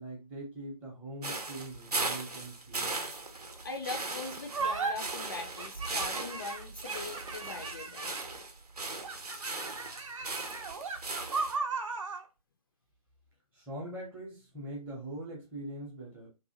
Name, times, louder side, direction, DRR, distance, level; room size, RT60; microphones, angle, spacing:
voice 1, 0.0-3.0 13.5-16.3, right 1 dB, 10° right, 0.6 m, -42 dB
sound 1, 1.2-11.6, right 3 dB, 90° right, 0.7 m, -38 dB
voice 2, 3.6-8.1, left 3 dB, 35° left, 0.4 m, -41 dB
sound 2, 4.5-4.9 5.6-8.4 9.0-12.2, right 4 dB, 55° right, 0.6 m, -36 dB
2.6 x 2.3 x 2.6 m
figure-of-eight pair, 145°, 20 cm